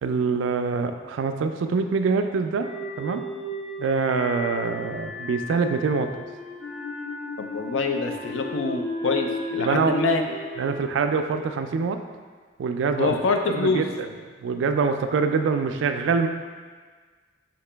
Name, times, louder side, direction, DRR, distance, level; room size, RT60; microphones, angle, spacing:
voice 1, 0.0-2.7 3.0-3.3 3.8-6.1 9.6-9.9 10.6-12.0 12.6-13.2 13.5-14.1 14.4-16.3, right 5 dB, 75° right, 7 dB, 0.3 m, -24 dB
sound 1, 2.6-11.8, left 2 dB, 50° left, 0.9 m, -34 dB
voice 2, 7.4-10.3 13.0-13.8, left 3 dB, 80° left, 4 dB, 0.4 m, -25 dB
5.1 x 2.9 x 3.3 m, 1.5 s
head